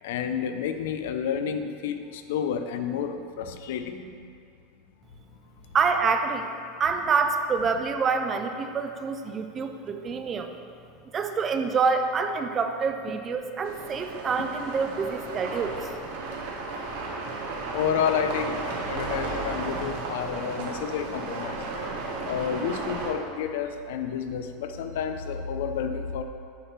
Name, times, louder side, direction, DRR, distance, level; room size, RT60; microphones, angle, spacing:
voice 1, 0.0-4.3 17.7-18.6 18.9-21.6 22.2-26.2, left 7 dB, 80° left, 8 dB, 0.5 m, -30 dB
voice 2, 5.7-6.5 6.8-10.5 11.1-15.9, right 5 dB, 20° right, 6 dB, 0.4 m, -27 dB
sound 1, 13.6-23.1, right 3 dB, 80° right, 1.1 m, -34 dB
8.0 x 3.6 x 5.8 m, 2.3 s
supercardioid pair, 165°, 0 cm